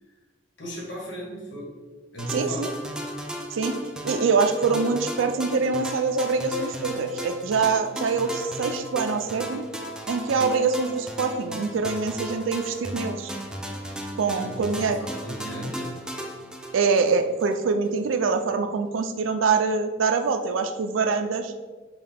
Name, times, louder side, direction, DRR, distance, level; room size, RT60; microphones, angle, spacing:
voice 1, 0.6-1.7 2.1-2.8 14.4-15.9, equal, 65° left, -3 dB, 1.3 m, -36 dB
sound 1, 2.2-17.6, equal, 5° right, 0.3 m, -35 dB
voice 2, 2.3-2.7 3.5-3.8 4.0-9.6 10.1-13.3 14.2-15.0 16.7-21.5, right 4 dB, 85° right, 7 dB, 0.4 m, -24 dB
5.6 x 2.3 x 3.5 m, 1.4 s
head